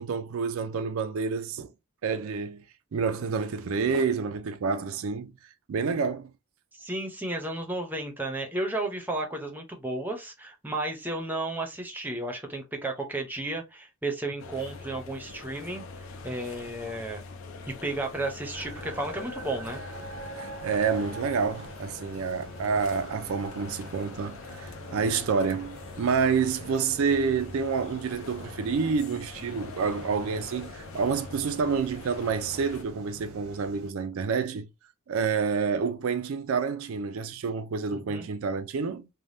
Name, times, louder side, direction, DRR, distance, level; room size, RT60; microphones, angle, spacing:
voice 1, 0.0-1.7 2.0-2.6 2.9-5.3 5.7-6.3 20.4-34.7 35.1-39.1, right 5 dB, 70° right, 0.4 m, -28 dB
voice 2, 6.7-15.8 16.2-17.2 17.8-19.8 37.9-38.3, right 2 dB, 10° right, 0.6 m, -33 dB
sound 1, 14.4-32.8, left 3 dB, 65° left, 0.5 m, -43 dB
sound 2, 18.5-33.9, right 2 dB, 85° right, 0.9 m, -46 dB
3.3 x 2.1 x 2.6 m
head